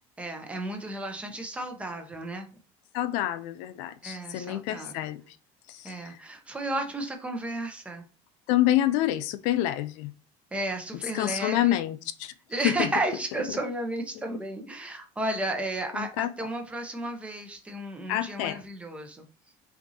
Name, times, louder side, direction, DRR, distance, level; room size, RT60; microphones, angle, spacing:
voice 1, 0.2-2.5 4.0-4.9 5.8-8.0 10.5-11.8 12.5-19.2, right 1 dB, 10° right, 0.8 m, -33 dB
voice 2, 2.9-5.2 5.7-6.2 8.5-10.1 11.1-12.3 12.6-12.9 15.9-16.3 18.1-18.6, left 14 dB, 85° left, 0.5 m, -27 dB
5.9 x 2.6 x 2.7 m
cardioid pair, 160°, 12 cm